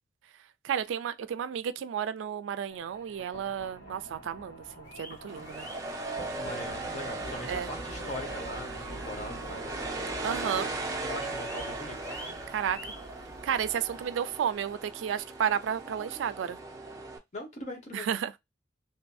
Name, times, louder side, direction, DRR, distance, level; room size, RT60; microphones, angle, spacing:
voice 1, 0.6-5.7 7.5-7.7 10.2-10.7 12.5-12.8 13.4-16.6 17.9-18.4, right 8 dB, 85° right, 0.3 m, -32 dB
sound 1, 2.7-14.1, right 1 dB, 55° left, 1.4 m, -45 dB
sound 2, 4.8-6.5 6.9-7.0 7.5-7.6 8.3-8.4 8.6-8.7 9.0-10.1 10.4-10.7 11.0-14.4, left 1 dB, 10° left, 0.9 m, -49 dB
sound 3, 5.3-17.2, right 2 dB, 15° right, 0.4 m, -38 dB
voice 2, 6.4-9.7 11.0-12.0 17.3-18.1, left 2 dB, 40° left, 0.8 m, -41 dB
2.6 x 2.5 x 2.3 m
head